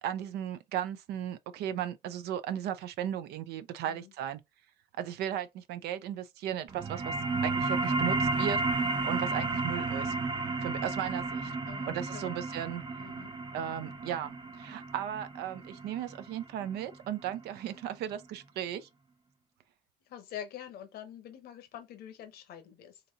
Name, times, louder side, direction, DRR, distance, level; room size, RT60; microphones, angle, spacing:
voice 1, 0.0-4.4 5.0-7.2 7.4-10.2 10.6-11.6 11.9-12.8 13.5-18.9, right 10 dB, 75° right, 0.4 m, -36 dB
sound 1, 6.7-17.8, right 3 dB, 25° right, 0.6 m, -33 dB
voice 2, 11.7-12.4 13.0-13.4 20.1-23.0, left 10 dB, 65° left, 0.9 m, -46 dB
3.9 x 2.7 x 2.7 m
cardioid pair, 110°, 17 cm